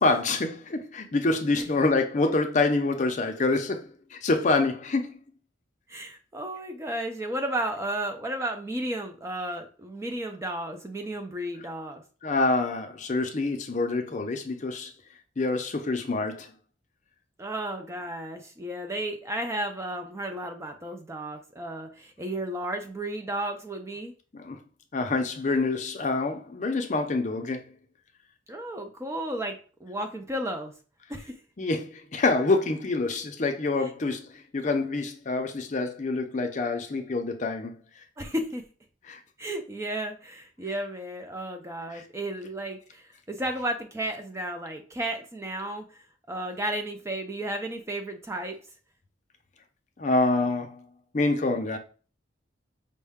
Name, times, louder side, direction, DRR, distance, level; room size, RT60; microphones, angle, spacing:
voice 1, 0.0-5.2 12.2-14.9 15.4-16.5 24.3-24.6 24.9-27.6 31.6-34.3 34.5-37.7 39.1-39.2 41.9-42.0 50.0-50.8 51.1-51.8, left 3 dB, 40° left, 0.5 m, -26 dB
voice 2, 5.9-12.0 17.4-24.1 28.5-30.7 31.1-31.3 33.8-33.9 38.2-38.6 39.4-45.8 46.3-48.6, right 1 dB, 15° right, 0.4 m, -33 dB
5.3 x 2.1 x 3.5 m
head